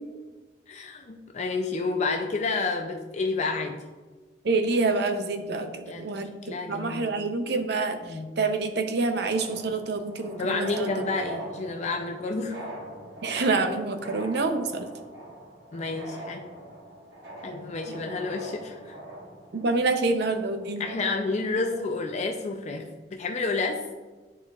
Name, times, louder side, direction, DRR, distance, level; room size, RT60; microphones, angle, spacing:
voice 1, 0.7-3.8 5.9-6.1 6.4-7.1 8.0-8.3 10.4-12.6 15.7-16.5 17.4-19.0 20.8-23.8, left 3 dB, 40° left, 2 dB, 0.4 m, -30 dB
voice 2, 4.4-10.9 13.2-14.9 17.9-18.0 19.5-20.9, right 3 dB, 65° right, 7 dB, 0.6 m, -27 dB
sound 1, 9.2-22.2, right 1 dB, 90° right, 1.3 m, -42 dB
9.8 x 4.2 x 2.4 m, 1.3 s
head